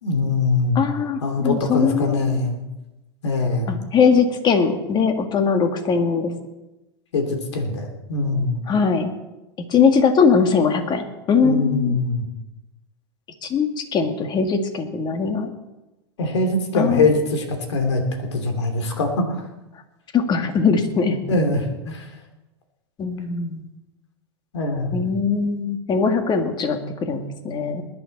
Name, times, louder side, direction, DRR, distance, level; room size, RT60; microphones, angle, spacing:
voice 1, 0.0-0.8 1.2-2.6 3.2-3.8 7.1-8.6 11.4-12.3 16.2-19.4 21.3-22.0 24.5-25.1, left 3 dB, 80° left, 5 dB, 2.9 m, -22 dB
voice 2, 0.8-2.4 3.7-6.3 8.7-9.1 9.7-12.0 13.4-15.5 16.7-17.1 20.1-21.2 23.0-23.7 24.9-27.8, left 5 dB, 30° left, 6 dB, 2.1 m, -21 dB
20.5 x 11.0 x 4.2 m, 1.0 s
hypercardioid pair, 100°, 14 cm